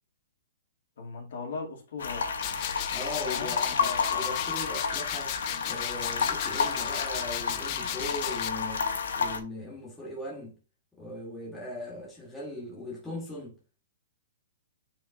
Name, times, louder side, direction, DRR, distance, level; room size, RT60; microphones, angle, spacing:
voice 1, 1.0-2.3 3.2-4.3, left 4 dB, 55° left, 2.5 m, -38 dB
sound 1, 2.0-9.4, left 5 dB, 85° left, 1.5 m, -31 dB
sound 2, 2.4-8.5, left 15 dB, 25° left, 0.3 m, -36 dB
voice 2, 2.9-5.3 5.6-8.9 9.1-10.5 11.0-13.6, left 1 dB, 5° left, 1.3 m, -39 dB
9.3 x 4.6 x 2.6 m
hypercardioid pair, 180°, 0 cm